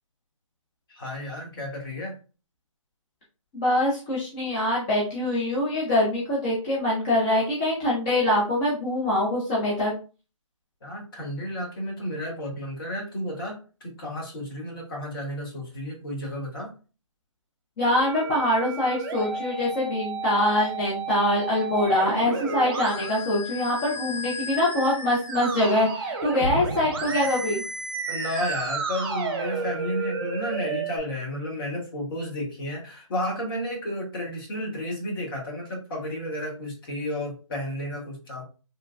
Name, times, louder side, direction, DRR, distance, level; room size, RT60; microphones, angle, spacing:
voice 1, 0.9-2.2 10.8-16.7 28.1-38.4, left 1 dB, 40° left, -2 dB, 1.3 m, -32 dB
voice 2, 3.5-9.9 17.8-27.6, left 1 dB, 15° left, -6 dB, 0.5 m, -24 dB
Musical instrument, 18.0-31.0, right 3 dB, 45° right, 0.8 m, -32 dB
3.1 x 2.1 x 2.4 m, 0.35 s
figure-of-eight pair, 155°, 17 cm